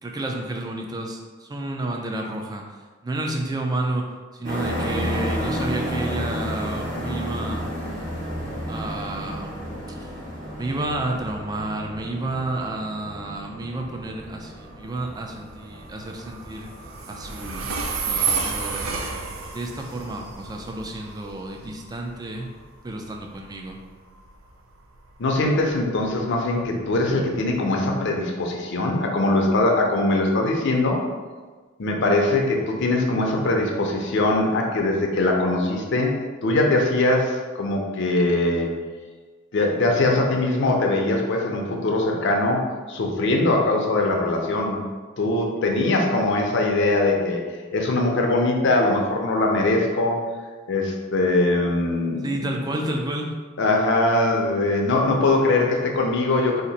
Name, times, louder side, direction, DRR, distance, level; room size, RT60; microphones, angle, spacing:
voice 1, 0.0-2.6 3.0-4.1 4.3-7.7 8.7-9.5 10.0-10.1 10.6-16.7 17.1-18.9 19.5-22.5 22.8-23.8 52.2-53.3, right 2 dB, 20° right, 2 dB, 0.4 m, -30 dB
sound 1, 4.4-21.0, equal, 40° right, 0.8 m, -32 dB
Train, 13.3-28.0, right 5 dB, 85° right, 0.4 m, -33 dB
voice 2, 25.2-31.0 31.8-36.2 36.4-38.7 39.5-44.8 45.2-47.4 47.7-50.2 50.7-52.6 52.8-52.9 53.6-56.6, left 2 dB, 60° left, 1 dB, 0.5 m, -22 dB
2.8 x 2.5 x 4.0 m, 1.4 s
head